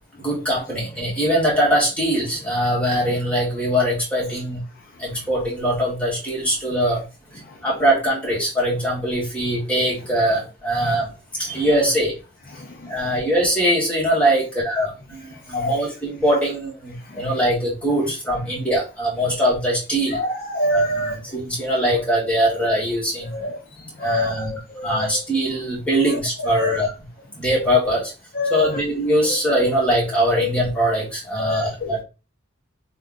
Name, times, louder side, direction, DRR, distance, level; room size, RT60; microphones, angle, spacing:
voice 1, 0.2-4.6 5.0-7.0 7.3-11.1 11.4-12.1 12.9-20.2 20.7-23.4 24.0-24.5 24.8-26.9 27.4-28.1 28.5-32.0, equal, 5° left, -4 dB, 1.4 m, -22 dB
voice 2, 12.5-13.0 15.5-15.8 17.0-17.3 20.1-21.4 23.3-25.2 26.0-26.8 28.3-28.8 29.3-29.4 30.4-30.5 31.4-32.0, left 1 dB, 45° left, 1 dB, 0.5 m, -27 dB
3.3 x 2.3 x 3.8 m, 0.30 s
head